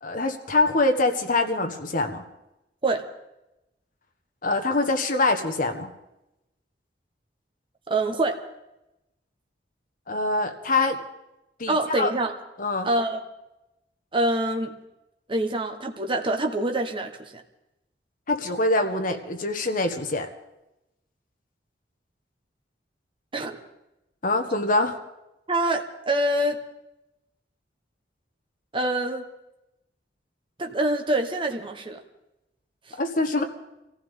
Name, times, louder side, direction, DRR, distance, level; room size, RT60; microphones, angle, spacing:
voice 1, 0.0-2.2 4.4-5.9 10.1-11.0 11.6-12.1 12.6-12.9 18.3-20.3 24.2-25.0 33.0-33.4, left 2 dB, 50° left, 5 dB, 1.4 m, -24 dB
voice 2, 7.9-8.4 11.7-12.3 12.8-13.2 14.1-14.8 15.3-17.4 23.3-23.6 25.5-26.6 28.7-29.2 30.6-32.0, right 1 dB, 30° right, 3 dB, 1.2 m, -25 dB
25.5 x 15.0 x 3.7 m, 0.92 s
head